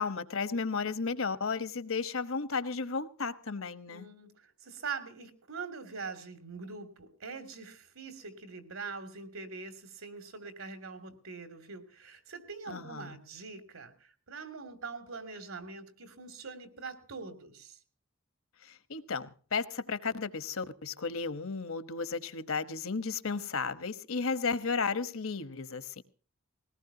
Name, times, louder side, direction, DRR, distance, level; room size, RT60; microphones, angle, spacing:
voice 1, 0.0-4.1 12.7-13.2 18.7-26.0, left 4 dB, 75° left, 1.2 m, -34 dB
voice 2, 3.9-17.8, right 4 dB, 80° right, 2.7 m, -43 dB
20.5 x 18.0 x 2.8 m
head